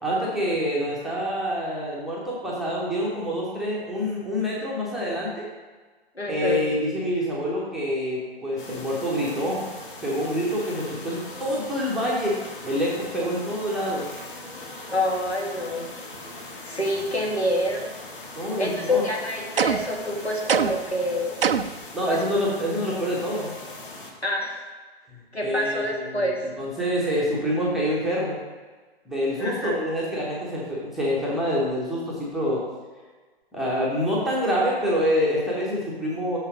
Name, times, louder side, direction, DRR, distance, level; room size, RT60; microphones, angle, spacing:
voice 1, 0.0-5.5 6.3-9.6 10.0-12.4 12.6-14.1 18.3-19.0 21.9-23.5 25.1-26.3 26.6-28.4 29.1-32.6 33.5-36.4, equal, ahead, -6 dB, 0.7 m, -26 dB
voice 2, 6.2-6.6 14.9-15.9 16.6-18.0 18.6-21.4 22.1-22.2 24.2-24.6 25.3-26.4 29.4-29.8, left 1 dB, 85° left, -1 dB, 1.8 m, -27 dB
sound 1, 8.6-24.1, left 2 dB, 55° left, 1.6 m, -40 dB
sound 2, 19.6-20.0 20.5-20.9 21.4-21.8, right 7 dB, 65° right, 0.5 m, -23 dB
6.5 x 5.6 x 4.8 m, 1.3 s
figure-of-eight pair, 130°, 31 cm